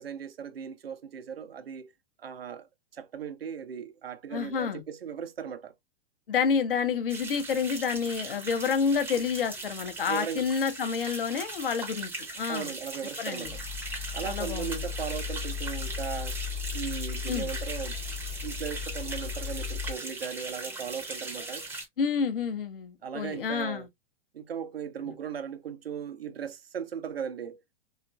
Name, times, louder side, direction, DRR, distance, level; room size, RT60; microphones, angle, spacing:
voice 1, 0.0-1.9 2.2-2.7 2.9-5.7 10.1-10.5 12.5-13.6 14.1-16.4 16.7-18.0 18.4-21.7 23.0-23.9 24.3-27.6, right 7 dB, 75° right, 0.5 m, -37 dB
voice 2, 4.3-4.8 6.3-12.1 12.4-12.7 13.2-13.5 14.2-14.8 17.3-17.5 22.0-23.9, left 6 dB, 65° left, 0.7 m, -29 dB
sound 1, 7.1-21.8, right 2 dB, 5° right, 0.6 m, -39 dB
sound 2, 13.4-19.9, left 7 dB, 45° left, 1.0 m, -36 dB
2.8 x 2.4 x 2.2 m
figure-of-eight pair, 105°, 30 cm